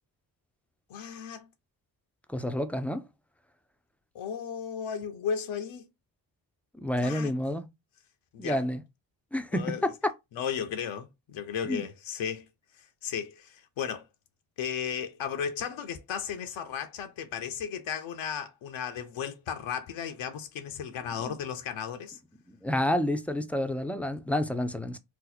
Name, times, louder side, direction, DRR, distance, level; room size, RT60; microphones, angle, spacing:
voice 1, 0.9-1.5 4.1-5.8 7.0-7.4 8.3-8.6 9.5-9.9 10.3-12.5 13.0-14.0 14.6-22.2, left 7 dB, 75° left, 0.7 m, -35 dB
voice 2, 2.3-3.0 6.8-7.6 8.4-8.8 9.3-9.6 11.7-11.8 21.3-21.4 22.5-25.0, left 1 dB, 5° left, 0.4 m, -29 dB
2.8 x 2.0 x 4.0 m
supercardioid pair, 50°, 47 cm